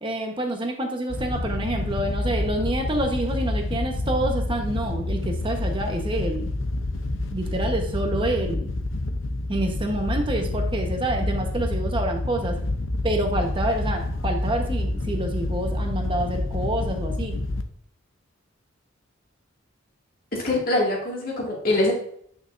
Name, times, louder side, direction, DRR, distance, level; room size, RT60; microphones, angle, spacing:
voice 1, 0.0-6.5 7.3-8.7 9.5-12.6 13.0-17.4, right 1 dB, 25° right, 3 dB, 1.1 m, -27 dB
Wind / Boat Water vehicle, 1.1-17.6, left 2 dB, 65° left, 0.7 m, -28 dB
voice 2, 20.3-21.9, left 2 dB, 45° left, -3 dB, 2.2 m, -23 dB
9.0 x 6.3 x 2.6 m, 0.64 s
head